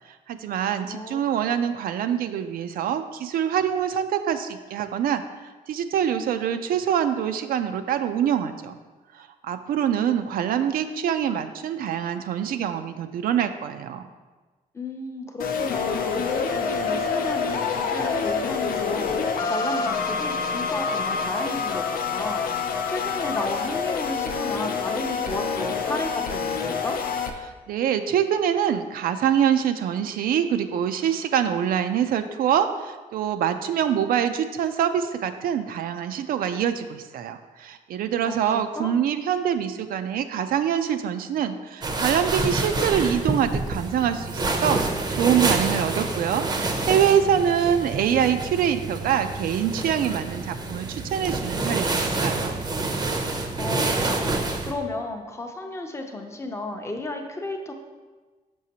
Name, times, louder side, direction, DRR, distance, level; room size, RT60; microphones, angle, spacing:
voice 1, 0.3-5.2 5.7-8.8 9.1-14.1 27.4-52.5, right 9 dB, 85° right, 9 dB, 0.4 m, -25 dB
voice 2, 0.9-1.3 14.7-22.4 22.9-27.0 38.2-39.0 53.5-57.7, left 2 dB, 20° left, 4 dB, 0.5 m, -33 dB
sound 1, 15.4-27.3, left 5 dB, 85° left, 0.5 m, -27 dB
sound 2, 41.8-54.7, right 2 dB, 30° right, 0.5 m, -27 dB
6.2 x 5.8 x 2.8 m, 1.3 s
wide cardioid pair, 160°, 15 cm